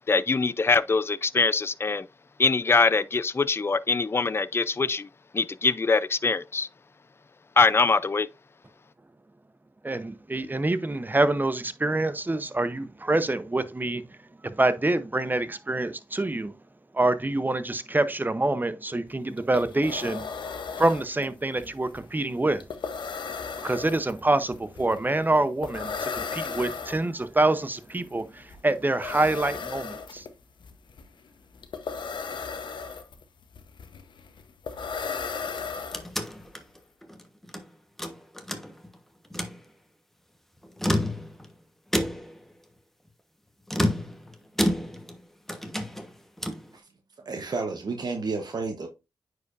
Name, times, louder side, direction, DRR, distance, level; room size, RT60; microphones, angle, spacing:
voice 1, 0.1-2.1 2.4-5.1 5.3-6.7 7.6-8.3, left 4 dB, 30° left, 0.4 m, -23 dB
voice 2, 9.8-14.1 14.4-16.5 16.9-20.3 20.8-22.7 23.6-30.3, right 2 dB, 25° right, 0.8 m, -26 dB
sound 1, 19.1-19.2 19.4-36.5, left 5 dB, 75° left, 1.0 m, -36 dB
sound 2, 35.5-37.6 38.0-39.0 39.2-39.6 40.6-41.5 41.9-42.4 43.7-45.2 45.5-46.7, left 1 dB, 5° left, 1.2 m, -29 dB
voice 3, 47.2-48.9, right 4 dB, 60° right, 1.0 m, -31 dB
9.3 x 4.8 x 2.6 m
cardioid pair, 55°, 8 cm